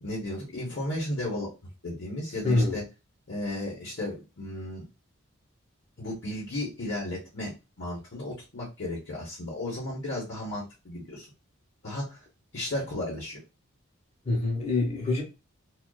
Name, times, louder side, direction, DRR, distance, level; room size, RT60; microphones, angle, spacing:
voice 1, 0.0-2.8 3.3-4.9 6.0-7.5 7.8-11.3 11.8-12.2 12.5-13.4, left 1 dB, 55° left, 0.8 m, -34 dB
voice 2, 2.4-2.8 14.2-15.2, left 2 dB, 30° left, 0.9 m, -25 dB
2.4 x 2.3 x 2.2 m
head